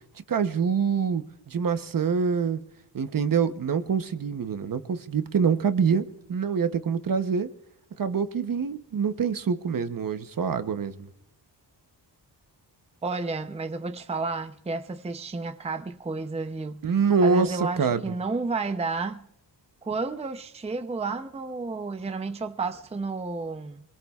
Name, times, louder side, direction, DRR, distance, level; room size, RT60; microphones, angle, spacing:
voice 1, 0.3-2.6 2.9-6.0 6.3-7.5 8.0-11.1 16.8-18.0, right 6 dB, 50° right, 0.9 m, -25 dB
voice 2, 13.0-16.8 17.2-19.2 19.8-23.8, right 3 dB, 15° right, 0.6 m, -31 dB
22.5 x 21.5 x 2.4 m
wide cardioid pair, 140°, 42 cm